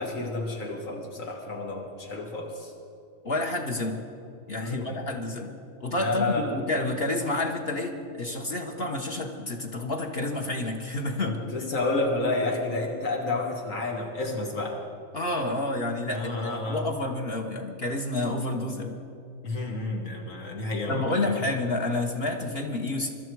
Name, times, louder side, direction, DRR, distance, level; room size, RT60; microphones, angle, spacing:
voice 1, 0.0-2.7 4.6-5.0 6.0-6.5 11.2-14.8 16.1-16.8 19.4-21.4, left 2 dB, 85° left, 0 dB, 2.0 m, -30 dB
voice 2, 3.2-4.0 4.5-5.5 5.8-11.4 15.1-19.0 20.9-23.1, left 2 dB, 50° left, 1 dB, 1.4 m, -29 dB
23.5 x 12.5 x 4.7 m, 2.7 s
omnidirectional pair, 1.3 m